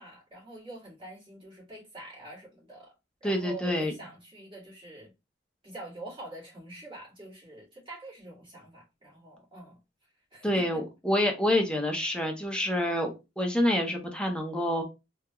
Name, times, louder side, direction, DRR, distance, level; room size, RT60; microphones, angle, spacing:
voice 1, 0.0-2.9 3.2-5.1 5.6-9.8 10.3-10.8, right 2 dB, 30° right, 2.0 m, -45 dB
voice 2, 3.2-3.9 10.4-14.8, left 1 dB, 5° left, 0.5 m, -27 dB
3.4 x 2.3 x 2.8 m
head